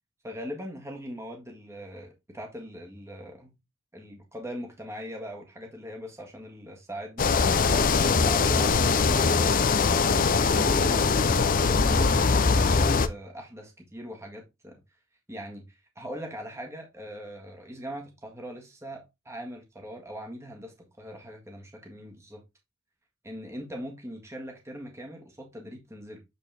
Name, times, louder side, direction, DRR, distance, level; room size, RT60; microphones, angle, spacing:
voice 1, 0.2-3.5 3.9-7.3 8.1-9.7 10.1-14.8 15.3-22.4 23.2-26.2, equal, 15° right, 1.7 m, -41 dB
sound 1, 7.2-13.1, left 4 dB, 40° left, 0.5 m, -22 dB
8.2 x 4.3 x 3.4 m
head